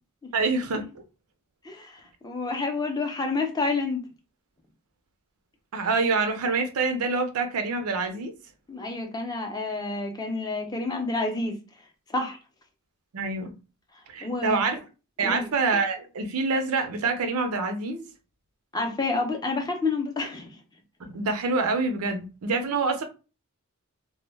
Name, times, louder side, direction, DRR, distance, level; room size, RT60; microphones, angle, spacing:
voice 1, 0.3-1.0 5.7-8.3 13.1-13.5 14.1-14.8 15.2-18.0 21.0-23.0, right 3 dB, 85° right, 0.5 m, -26 dB
voice 2, 1.6-4.0 8.7-11.6 12.1-12.4 14.2-14.6 15.2-15.5 18.7-20.6, left 3 dB, 20° left, 0.5 m, -29 dB
2.1 x 2.1 x 3.2 m
head